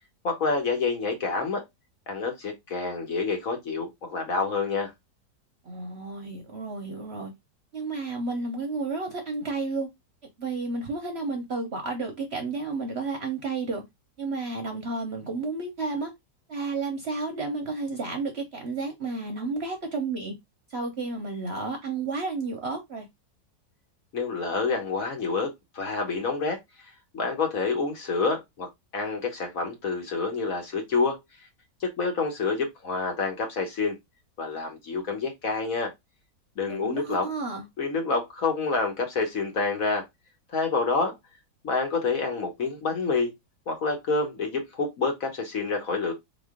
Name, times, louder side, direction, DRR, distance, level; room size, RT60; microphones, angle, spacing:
voice 1, 0.2-1.6 2.1-4.9 24.1-26.6 27.1-28.7 28.9-31.2 31.8-34.0 34.4-35.9 36.6-37.3 37.8-40.0 40.5-41.1 41.6-43.3 43.7-46.1, left 4 dB, 55° left, 1.4 m, -28 dB
voice 2, 5.6-7.3 7.7-9.9 10.4-13.8 14.2-16.1 16.5-20.3 20.7-23.1 36.7-37.7, right 3 dB, 50° right, 0.9 m, -31 dB
3.8 x 3.1 x 3.5 m
omnidirectional pair, 1.8 m